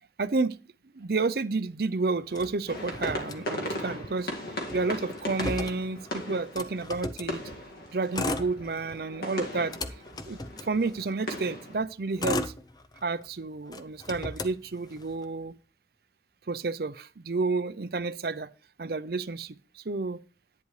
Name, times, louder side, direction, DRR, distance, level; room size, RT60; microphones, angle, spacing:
voice 1, 0.2-0.6 0.9-4.3 4.7-7.4 7.9-9.8 10.2-12.5 13.0-15.6 16.5-18.5 18.8-20.2, right 3 dB, 55° right, 0.6 m, -30 dB
Motor vehicle (road), 2.3-3.9 4.2-4.3 4.6-7.3 8.0-9.0 9.4-11.2 11.8-13.3 13.7-15.2, left 2 dB, 20° left, 0.6 m, -36 dB
sound 1, 2.7-11.8, left 1 dB, 55° left, 2.0 m, -38 dB
10.5 x 9.4 x 3.2 m
head